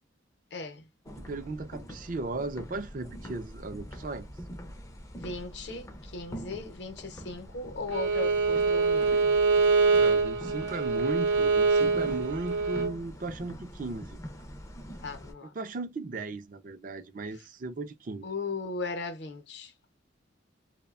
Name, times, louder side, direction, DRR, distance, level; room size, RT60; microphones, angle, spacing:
voice 1, 0.5-0.8 5.1-9.3 15.0-15.5 18.2-19.7, left 3 dB, 60° left, 0.7 m, -37 dB
sound 1, 1.0-15.3, equal, 15° left, 0.4 m, -44 dB
voice 2, 1.2-4.3 10.0-14.2 15.5-18.3, right 3 dB, 45° right, 0.4 m, -36 dB
Bowed string instrument, 7.9-12.9, right 4 dB, 85° right, 0.7 m, -24 dB
2.8 x 2.2 x 2.3 m
head